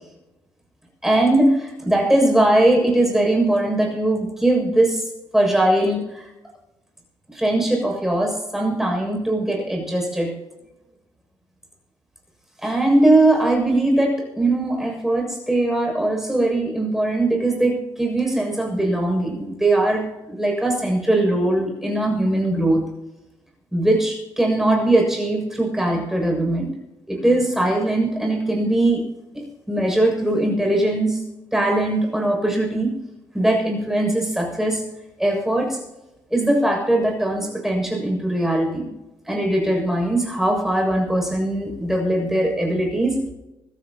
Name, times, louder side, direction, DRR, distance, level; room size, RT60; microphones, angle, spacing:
voice 1, 1.0-5.1 5.3-6.2 7.3-10.3 12.6-22.8 23.7-26.7 27.1-29.1 29.3-31.2 31.5-32.9 33.3-34.8 35.2-35.8 36.3-38.9 39.3-43.2, right 1 dB, 5° right, 0 dB, 7.1 m, -20 dB
25.0 x 13.5 x 3.0 m, 0.99 s
cardioid pair, 95°, 8 cm